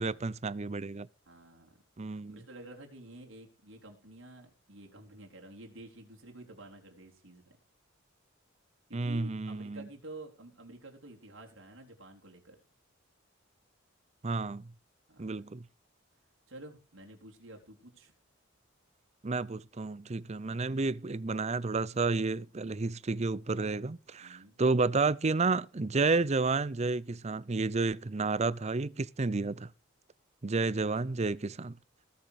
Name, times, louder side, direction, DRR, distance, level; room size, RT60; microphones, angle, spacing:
voice 1, 0.0-1.1 2.0-2.4 8.9-9.9 14.2-14.7 15.2-15.6 19.2-29.7 30.4-31.7, right 3 dB, 35° right, 0.6 m, -31 dB
voice 2, 1.3-1.8 2.1-7.6 8.9-12.6 15.1-15.5 16.5-18.1 24.2-24.6 31.0-31.2, right 2 dB, 85° right, 4.0 m, -50 dB
19.5 x 7.3 x 5.0 m
head